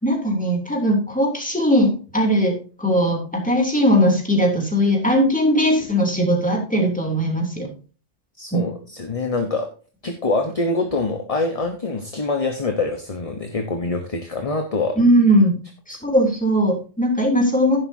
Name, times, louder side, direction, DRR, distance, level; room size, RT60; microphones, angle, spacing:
voice 1, 0.0-7.7 8.5-8.6 15.0-15.5 15.9-17.9, equal, 5° left, 0 dB, 3.1 m, -19 dB
voice 2, 8.4-9.7 10.0-15.0, left 3 dB, 30° left, 5 dB, 1.1 m, -25 dB
11.0 x 11.0 x 2.8 m, 0.36 s
omnidirectional pair, 1.3 m